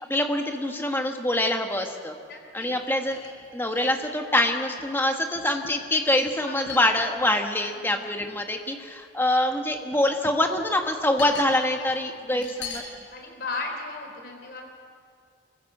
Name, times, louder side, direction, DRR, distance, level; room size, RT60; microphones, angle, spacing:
voice 1, 0.1-2.1 2.5-3.2 3.5-12.8, left 1 dB, 10° left, 4 dB, 1.4 m, -25 dB
voice 2, 2.3-2.7 6.4-6.6 7.7-7.9 12.3-12.4 13.0-14.6, left 3 dB, 60° left, 2 dB, 4.0 m, -36 dB
sound 1, 2.8-2.9 3.1-4.2 4.8-4.9 5.3-5.9 6.7-7.4 8.2-8.4 9.5-10.0 10.3-11.6 11.9-12.0 12.4-12.9 13.5-13.6, left 4 dB, 85° left, 5.2 m, -40 dB
25.0 x 15.0 x 7.9 m, 2.2 s
head